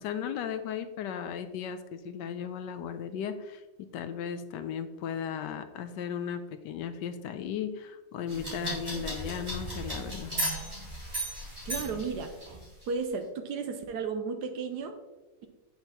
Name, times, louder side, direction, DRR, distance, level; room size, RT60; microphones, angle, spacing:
voice 1, 0.0-10.3, left 8 dB, 75° left, 10 dB, 1.1 m, -36 dB
sound 1, 8.3-12.8, right 1 dB, 25° right, 2.8 m, -35 dB
voice 2, 11.7-12.3 12.9-15.0, right 5 dB, 70° right, 7 dB, 1.2 m, -33 dB
8.0 x 5.7 x 2.9 m, 1.1 s
omnidirectional pair, 2.0 m